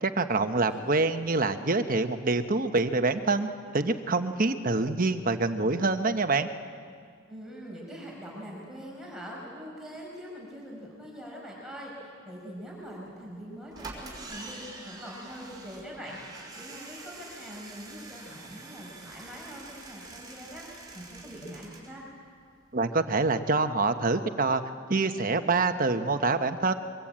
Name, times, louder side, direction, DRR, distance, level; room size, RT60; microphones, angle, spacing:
voice 1, 0.0-3.5 3.7-6.5 22.7-24.6 24.9-26.7, right 3 dB, 45° right, 8 dB, 1.1 m, -26 dB
voice 2, 7.3-22.0, equal, 5° right, -4 dB, 5.3 m, -43 dB
sound 1, 13.1-13.2 13.7-21.9 22.2-22.3 22.5-22.6, right 3 dB, 20° right, 4.9 m, -45 dB
24.0 x 22.5 x 8.9 m, 2.1 s
head